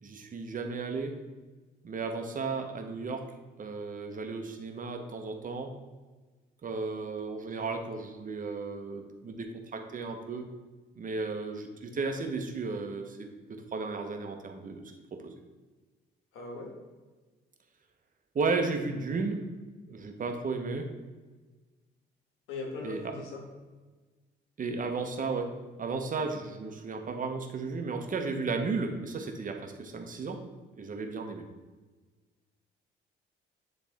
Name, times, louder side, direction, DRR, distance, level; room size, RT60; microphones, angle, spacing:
voice 1, 0.0-1.1 1.8-3.3 3.6-5.7 6.6-10.5 11.0-15.4 18.3-19.5 19.8-20.9 22.8-23.1 24.6-25.5 25.8-30.4 30.8-31.4, right 4 dB, 45° right, 4 dB, 0.9 m, -34 dB
voice 2, 7.4-7.7 16.3-16.7 22.5-23.4, left 3 dB, 85° left, 1 dB, 1.5 m, -40 dB
10.0 x 3.4 x 3.5 m, 1.3 s
cardioid pair, 90°, 20 cm